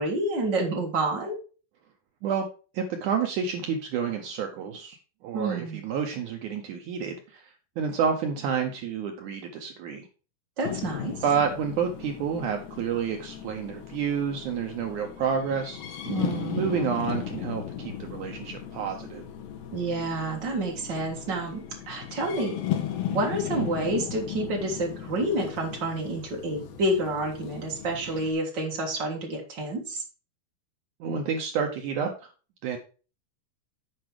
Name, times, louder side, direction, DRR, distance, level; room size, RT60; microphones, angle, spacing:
voice 1, 0.0-1.4 5.3-5.8 10.6-11.1 16.0-16.7 19.7-22.6 23.1-30.0, right 2 dB, 45° right, 0 dB, 1.6 m, -29 dB
voice 2, 2.7-5.0 5.2-10.1 11.2-15.8 16.5-19.2 31.0-32.1 32.6-32.8, right 7 dB, 80° right, 3 dB, 1.7 m, -29 dB
sound 1, 10.6-28.3, left 10 dB, 85° left, 3.2 m, -36 dB
7.8 x 4.9 x 4.8 m, 0.36 s
omnidirectional pair, 4.5 m